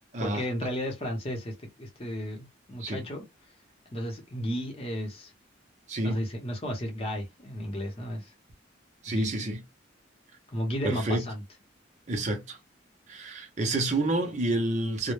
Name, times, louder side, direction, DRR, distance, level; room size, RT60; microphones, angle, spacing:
voice 1, 0.2-3.2 3.9-5.3 6.0-8.3 9.1-9.3 10.5-11.4, equal, 30° left, 0.7 m, -33 dB
voice 2, 5.9-6.2 9.0-9.6 10.8-11.2 12.1-12.6 13.1-15.1, right 2 dB, 40° right, 0.5 m, -29 dB
2.2 x 2.0 x 3.0 m
head